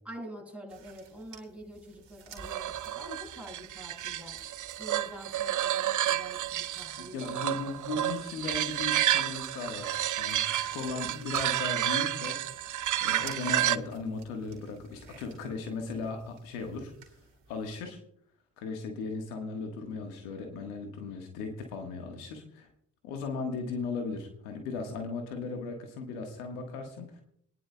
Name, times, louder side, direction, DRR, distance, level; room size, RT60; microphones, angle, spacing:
voice 1, 0.0-4.4 4.8-7.6, right 1 dB, 5° right, -1 dB, 6.1 m, -46 dB
sound 1, 0.7-17.8, right 5 dB, 70° right, 2.3 m, -55 dB
sound 2, 2.4-13.8, right 12 dB, 45° right, 0.5 m, -31 dB
voice 2, 7.0-12.7 13.0-17.1 17.5-18.0 18.6-22.7 23.0-27.2, left 3 dB, 90° left, 4 dB, 1.5 m, -37 dB
25.0 x 10.5 x 2.2 m, 0.69 s
hypercardioid pair, 45°, 44 cm